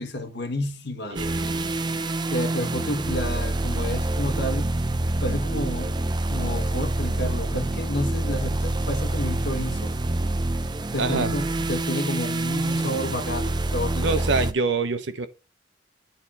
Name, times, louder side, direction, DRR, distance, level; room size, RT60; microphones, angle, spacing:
voice 1, 0.0-1.2 2.3-4.7 5.2-6.0 6.3-9.9 10.9-14.3, left 1 dB, 65° left, 1.3 m, -30 dB
voice 2, 1.1-1.7 11.0-11.4 14.0-15.3, right 4 dB, 80° right, 1.0 m, -26 dB
sound 1, 1.2-14.5, right 2 dB, 25° right, 0.6 m, -26 dB
9.3 x 4.4 x 4.2 m
head